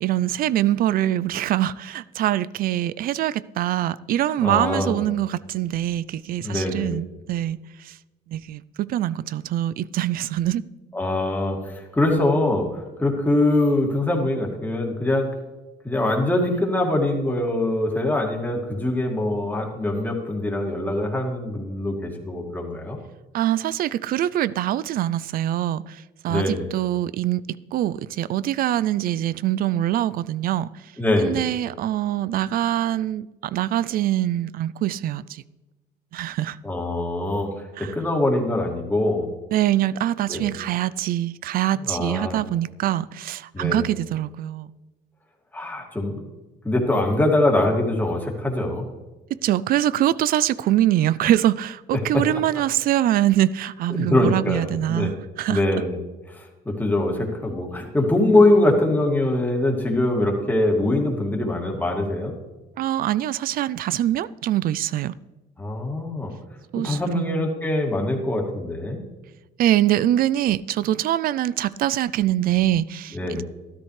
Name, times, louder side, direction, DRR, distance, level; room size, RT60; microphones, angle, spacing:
voice 1, 0.0-8.0 8.3-10.6 23.3-27.4 27.7-30.7 31.2-35.4 36.1-36.6 37.8-38.0 39.5-44.7 49.3-55.6 62.8-65.1 66.7-67.5 69.6-73.4, right 13 dB, 60° right, 0.4 m, -24 dB
voice 2, 4.4-5.0 6.4-6.9 10.9-15.3 15.8-23.0 26.3-26.7 31.0-31.4 36.6-39.3 40.3-40.5 41.9-42.4 43.5-43.8 45.5-46.2 46.6-48.8 51.9-52.2 53.9-55.1 55.5-56.0 56.3-62.3 65.6-66.3 66.8-69.0 73.1-73.4, left 1 dB, 10° left, 2.3 m, -23 dB
13.0 x 13.0 x 3.3 m
cardioid pair, 110°, 17 cm